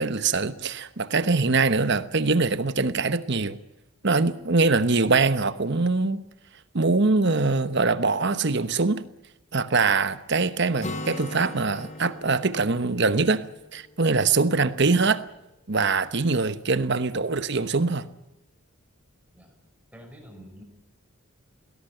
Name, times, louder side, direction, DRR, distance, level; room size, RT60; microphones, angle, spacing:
voice 1, 0.0-3.6 4.0-6.2 6.7-9.0 9.5-13.4 13.7-15.2 15.7-18.1, right 3 dB, 50° right, 1.1 m, -23 dB
Acoustic guitar, 10.8-14.5, left 2 dB, 30° left, 1.3 m, -39 dB
voice 2, 16.8-17.2 19.3-19.5 19.9-20.6, equal, 5° right, 5.3 m, -48 dB
20.0 x 17.5 x 9.0 m
head